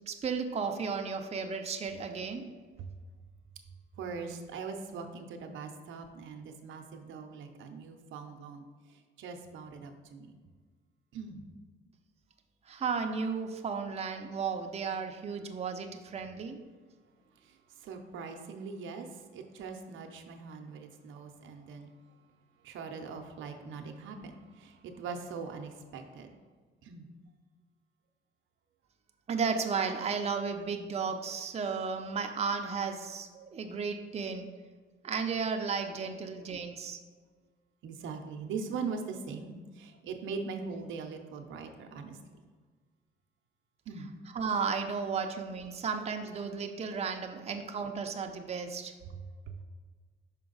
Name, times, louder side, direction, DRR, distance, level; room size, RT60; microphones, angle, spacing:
voice 1, 0.1-2.5 12.7-16.6 29.3-34.5 35.0-37.0 44.0-48.9, right 5 dB, 30° right, 4 dB, 0.6 m, -34 dB
voice 2, 4.0-8.6 9.2-10.4 11.1-11.4 17.8-19.1 19.3-21.9 22.6-26.3 26.8-27.0 37.8-42.2 43.9-44.1 49.5-49.6, right 5 dB, 80° right, 4 dB, 0.7 m, -41 dB
5.8 x 4.4 x 3.9 m, 1.5 s
cardioid pair, 90°, 20 cm